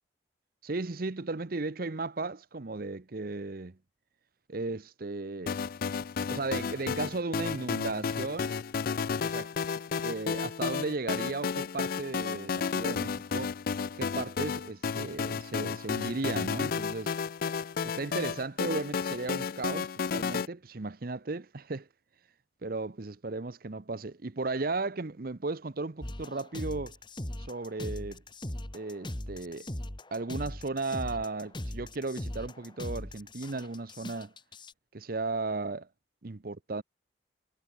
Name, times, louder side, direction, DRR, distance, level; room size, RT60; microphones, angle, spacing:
voice 1, 0.6-3.8 4.5-5.6 6.3-8.5 9.2-9.5 10.0-13.5 14.0-17.1 17.8-21.9 22.6-26.9 27.4-28.2 28.7-29.7 30.1-34.3 34.9-35.9 36.2-36.8, right 3 dB, 50° right, 0.8 m, -35 dB
sound 1, 5.5-20.5, left 6 dB, 50° left, 0.3 m, -32 dB
sound 2, 26.0-34.7, left 1 dB, 25° left, 2.0 m, -39 dB
head